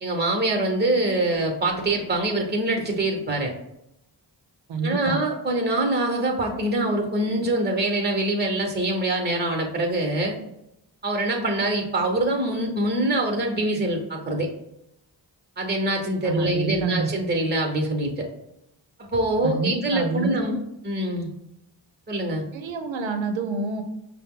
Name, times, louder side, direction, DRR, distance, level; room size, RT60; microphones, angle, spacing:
voice 1, 0.0-3.5 4.8-10.4 11.0-14.5 15.6-18.3 19.0-20.6 20.8-21.3 22.1-22.4, right 1 dB, 20° right, 2 dB, 1.0 m, -24 dB
voice 2, 4.7-5.2 16.2-17.1 19.4-20.6 22.5-23.8, right 3 dB, 80° right, 6 dB, 0.6 m, -27 dB
5.4 x 2.0 x 3.7 m, 0.83 s
cardioid pair, 45°, 45 cm